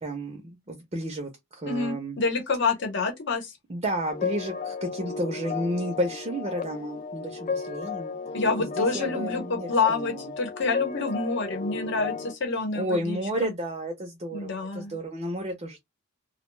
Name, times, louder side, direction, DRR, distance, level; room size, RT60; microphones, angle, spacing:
voice 1, 0.0-2.2 3.7-8.1 8.6-10.3 12.7-15.8, right 1 dB, 30° right, 0.5 m, -32 dB
voice 2, 1.7-3.5 8.3-13.5 14.3-15.0, left 4 dB, 60° left, 0.9 m, -28 dB
sound 1, 4.1-12.3, left 5 dB, 40° left, 0.3 m, -34 dB
2.2 x 2.2 x 3.1 m
head